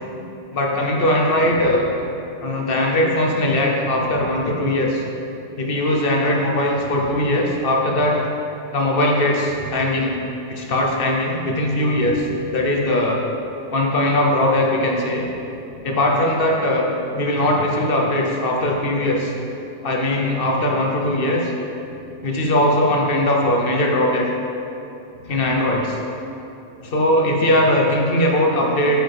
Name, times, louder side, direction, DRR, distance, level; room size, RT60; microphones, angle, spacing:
voice 1, 0.5-1.8 2.4-5.0 5.6-8.2 8.7-10.1 10.5-12.2 12.5-13.2 13.7-15.2 15.8-16.8 17.1-19.3 19.8-21.5 22.2-24.3 25.3-26.0 26.8-29.0, left 1 dB, 55° left, 0 dB, 1.0 m, -20 dB
voice 2, 1.4-2.2 4.0-4.4 6.8-7.1 9.5-9.8 11.9-12.4 15.1-16.1 18.6-18.8 21.8-22.0 25.1-25.5, left 3 dB, 85° left, -9 dB, 1.4 m, -39 dB
8.0 x 6.5 x 3.4 m, 2.8 s
omnidirectional pair, 1.2 m